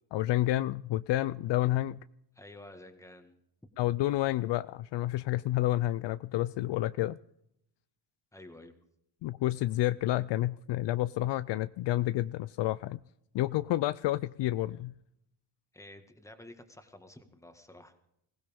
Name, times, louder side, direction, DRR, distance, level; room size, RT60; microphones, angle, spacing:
voice 1, 0.1-2.0 3.8-7.2 9.2-13.0 13.3-14.9, left 15 dB, 65° left, 16 dB, 0.5 m, -29 dB
voice 2, 2.3-3.4 8.3-8.7 15.7-18.0, left 1 dB, 5° left, 7 dB, 1.7 m, -51 dB
21.0 x 16.0 x 3.6 m, 0.76 s
cardioid pair, 105°, 46 cm